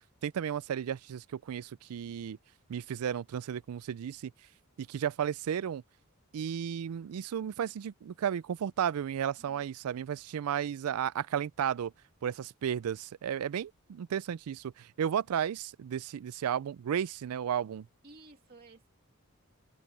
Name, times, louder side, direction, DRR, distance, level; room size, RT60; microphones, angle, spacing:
voice 1, 0.2-2.4 2.7-4.3 4.8-5.8 6.3-11.9 12.2-17.9, right 8 dB, 80° right, 0.4 m, -33 dB
voice 2, 9.4-9.7 18.0-18.9, right 2 dB, 40° right, 2.6 m, -55 dB
open air
head